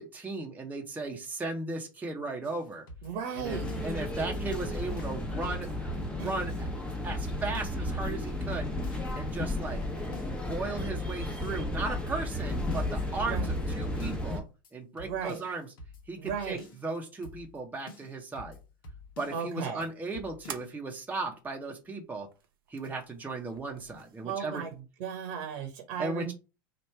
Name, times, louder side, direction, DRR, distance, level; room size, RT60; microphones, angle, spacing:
voice 1, 0.0-2.8 3.4-5.7 6.1-6.7 7.0-9.8 10.3-14.4 14.7-15.7 16.1-18.6 19.2-22.3 22.7-24.6 26.0-26.3, right 3 dB, 15° right, 1 dB, 0.8 m, -36 dB
sound 1, 2.4-4.0 4.3-4.4 4.6-6.6 6.9-7.3 7.5-9.2 9.5-9.6 9.8-11.8 12.1-12.4 12.7-14.4 14.6-14.7 15.0-16.9 17.2-17.6 17.9-19.5 19.8-19.9 20.1-20.7, left 2 dB, 75° left, 1.0 m, -49 dB
voice 2, 3.0-3.7 6.2-6.3 13.2-13.5 15.0-15.4 16.2-16.6 19.3-19.8 24.2-24.7 25.0-26.3, right 7 dB, 60° right, 4 dB, 1.0 m, -35 dB
sound 2, 3.4-14.4, left 1 dB, 10° left, 1.0 m, -33 dB
sound 3, 19.0-24.8, right 8 dB, 80° right, 0.5 m, -51 dB
3.1 x 2.5 x 4.4 m, 0.30 s
hypercardioid pair, 85°, 12 cm